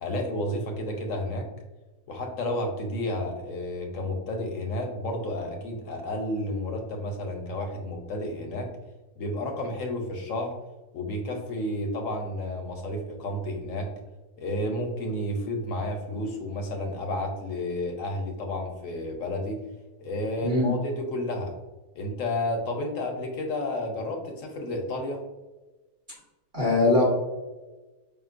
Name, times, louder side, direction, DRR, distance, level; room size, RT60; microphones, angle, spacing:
voice 1, 0.0-1.5 2.1-8.7 9.2-10.6 10.9-13.9 14.4-19.6 20.0-21.5 21.9-25.2, left 1 dB, 65° left, 3 dB, 0.9 m, -31 dB
voice 2, 20.4-20.7 26.5-27.1, left 2 dB, 35° right, -6 dB, 1.0 m, -21 dB
5.1 x 2.9 x 2.4 m, 1.2 s
omnidirectional pair, 1.7 m